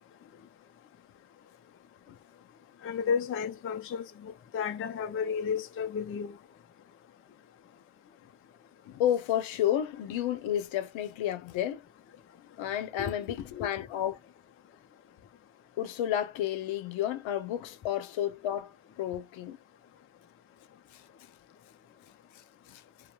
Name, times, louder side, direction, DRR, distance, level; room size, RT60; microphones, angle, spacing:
voice 1, 2.8-6.4 13.6-13.7, left 6 dB, 30° left, 0.4 m, -32 dB
voice 2, 8.8-11.9 12.6-14.2 15.8-19.6 20.9-21.0 22.3-22.8, left 11 dB, 65° left, 0.7 m, -31 dB
2.9 x 2.2 x 2.2 m
cardioid pair, 95°, 49 cm